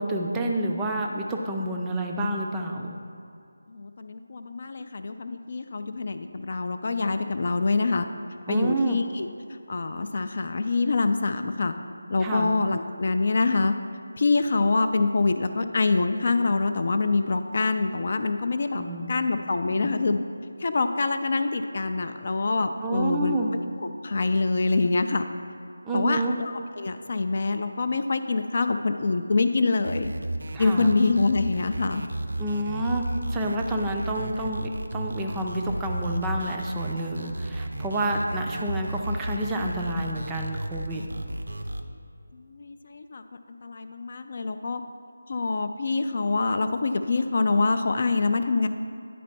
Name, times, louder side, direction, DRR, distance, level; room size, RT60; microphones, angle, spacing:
voice 1, 0.0-3.0 8.5-9.0 12.2-12.5 18.7-19.9 22.8-23.5 25.8-26.4 30.5-30.9 32.4-41.0, right 1 dB, 10° right, 0 dB, 0.4 m, -29 dB
voice 2, 3.7-8.1 8.5-9.3 9.7-11.7 12.1-13.7 14.2-20.2 20.6-23.4 23.8-25.3 25.9-30.1 30.6-32.0 42.3-43.2 43.6-44.8 45.3-48.7, left 3 dB, 50° left, 8 dB, 0.4 m, -25 dB
sound 1, 29.8-41.8, right 1 dB, 75° right, 0.6 m, -33 dB
10.0 x 4.3 x 4.2 m, 2.6 s
figure-of-eight pair, 165°, 0 cm